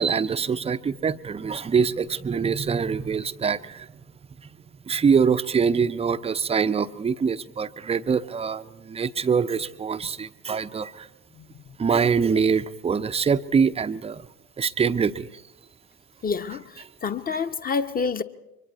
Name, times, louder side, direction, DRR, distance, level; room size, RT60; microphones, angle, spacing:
voice 1, 0.0-3.9 4.9-11.1 11.8-14.2 14.6-15.3, right 6 dB, 15° right, 0.7 m, -24 dB
voice 2, 16.2-16.6 17.0-18.2, left 5 dB, 20° left, 1.0 m, -27 dB
29.5 x 24.5 x 4.2 m
figure-of-eight pair, 65°, 43 cm